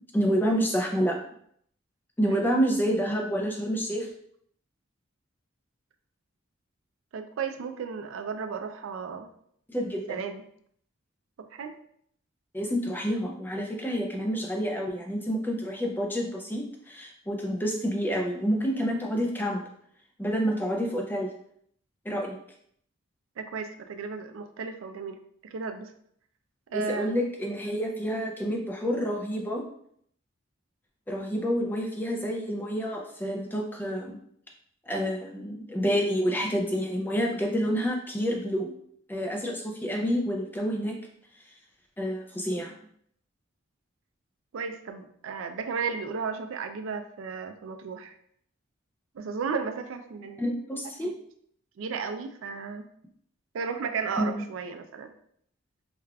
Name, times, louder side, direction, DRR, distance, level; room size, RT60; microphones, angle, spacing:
voice 1, 0.1-1.2 2.2-4.1 9.7-10.2 12.5-19.6 20.2-21.3 22.1-22.4 26.7-29.6 31.1-34.2 34.9-38.7 39.1-41.0 42.0-42.7 50.4-51.1 54.2-54.4, equal, 10° left, 1 dB, 0.3 m, -28 dB
voice 2, 7.1-9.3 10.1-10.4 11.5-11.7 23.4-25.9 26.7-27.2 44.5-48.2 49.1-50.4 51.0-51.1 51.8-52.9 53.5-55.1, right 5 dB, 75° right, 7 dB, 0.4 m, -34 dB
4.8 x 2.4 x 2.2 m, 0.67 s
head